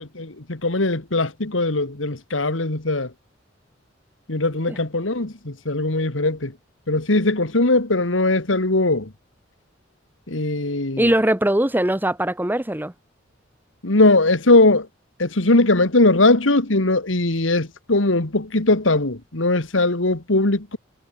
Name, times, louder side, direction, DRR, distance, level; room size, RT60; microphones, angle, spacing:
voice 1, 0.0-3.1 4.3-6.5 6.9-9.1 10.3-11.1 13.8-14.9 15.2-20.8, left 2 dB, 85° left, 2.2 m, -20 dB
voice 2, 11.0-12.9, right 1 dB, 10° right, 1.1 m, -21 dB
head